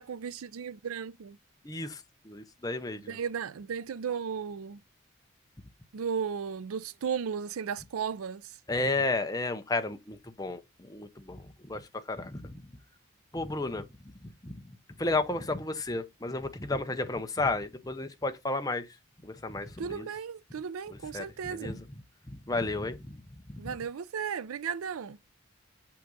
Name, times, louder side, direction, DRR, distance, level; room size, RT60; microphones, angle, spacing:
voice 1, 0.0-1.4 3.1-4.8 5.9-8.6 19.8-21.8 23.6-25.2, right 7 dB, 85° right, 0.4 m, -35 dB
voice 2, 1.6-2.0 2.3-3.2 8.7-12.6 13.3-13.9 14.4-14.6 15.0-18.9 19.2-20.1 21.1-21.2 21.6-21.8 22.3-23.2 23.5-23.6, left 2 dB, 15° left, 0.7 m, -32 dB
7.6 x 5.8 x 3.9 m
head